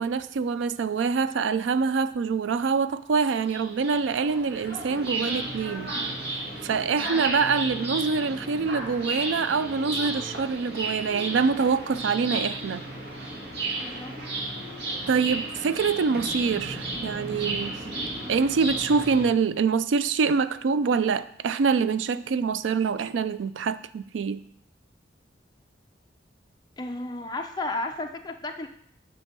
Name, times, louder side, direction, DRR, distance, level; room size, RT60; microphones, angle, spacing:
voice 1, 0.0-5.9 6.6-12.8 15.1-17.8 18.3-24.4, right 5 dB, 85° right, 14 dB, 0.4 m, -25 dB
sound 1, 3.2-19.3, right 2 dB, 60° right, 1.6 m, -33 dB
voice 2, 6.9-7.2 13.8-14.1 26.8-28.7, left 2 dB, 20° left, 4 dB, 0.5 m, -33 dB
8.1 x 3.5 x 6.0 m, 0.68 s
head